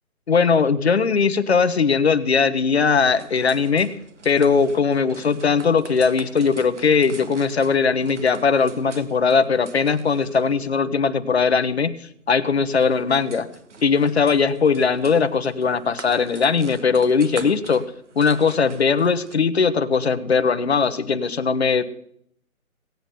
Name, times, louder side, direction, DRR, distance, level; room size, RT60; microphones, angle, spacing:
voice 1, 0.3-4.0 4.2-13.5 13.8-17.9 18.2-21.8, left 5 dB, 45° left, 12 dB, 1.0 m, -19 dB
sound 1, 2.9-19.4, right 4 dB, 55° right, 1.7 m, -44 dB
17.0 x 9.3 x 6.8 m, 0.70 s
hypercardioid pair, 170°, 43 cm